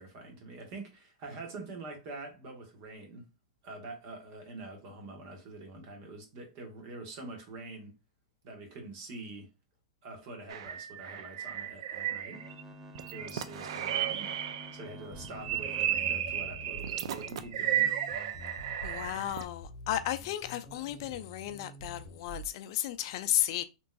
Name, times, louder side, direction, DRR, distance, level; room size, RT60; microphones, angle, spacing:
voice 1, 0.0-3.3 3.6-8.0 8.4-9.5 10.0-12.5 13.1-14.3 14.7-17.9, right 2 dB, 50° right, 1.3 m, -45 dB
sound 1, 10.5-12.6 12.9-14.8 15.2-19.4, right 10 dB, 70° right, 0.4 m, -34 dB
sound 2, 12.3-17.3 17.9-18.0 18.3-18.5 18.9-19.2, equal, 15° right, 0.5 m, -50 dB
sound 3, 15.1-22.5, equal, 10° left, 1.4 m, -48 dB
voice 2, 18.8-23.6, left 13 dB, 55° left, 0.4 m, -33 dB
3.5 x 3.0 x 2.3 m
hypercardioid pair, 125°, 3 cm